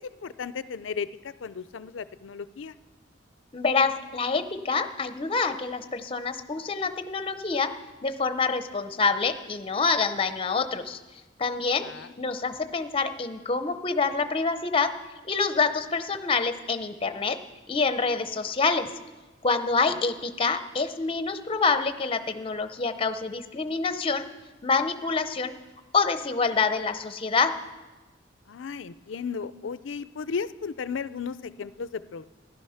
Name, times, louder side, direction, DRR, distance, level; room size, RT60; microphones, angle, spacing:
voice 1, 0.2-1.1 1.4-2.7 11.8-12.1 28.5-32.2, left 5 dB, 80° left, 15 dB, 0.5 m, -34 dB
voice 2, 3.5-7.7 8.0-11.0 11.4-11.9 12.2-14.9 15.3-17.4 17.7-18.9 19.4-24.3 24.6-25.5 25.9-27.5, left 4 dB, 30° left, 10 dB, 0.6 m, -26 dB
15.0 x 11.5 x 5.7 m, 1.2 s
head